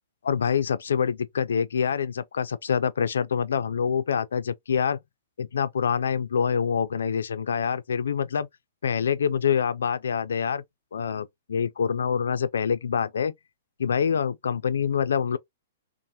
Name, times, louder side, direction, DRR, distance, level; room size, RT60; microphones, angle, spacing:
voice 1, 0.2-5.0 5.4-8.5 8.8-10.6 10.9-13.3 13.8-15.4, left 7 dB, 90° left, 0.3 m, -26 dB
3.2 x 2.0 x 2.7 m
hypercardioid pair, 150°, 0 cm